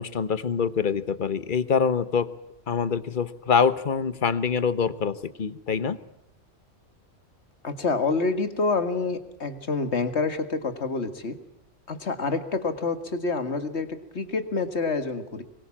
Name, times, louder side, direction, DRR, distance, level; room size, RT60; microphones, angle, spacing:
voice 1, 0.0-2.3 2.7-6.0, left 6 dB, 40° left, 15 dB, 1.2 m, -25 dB
voice 2, 7.6-11.4 11.9-15.4, left 3 dB, 55° left, 9 dB, 2.2 m, -27 dB
24.5 x 22.0 x 7.3 m, 0.80 s
omnidirectional pair, 1.3 m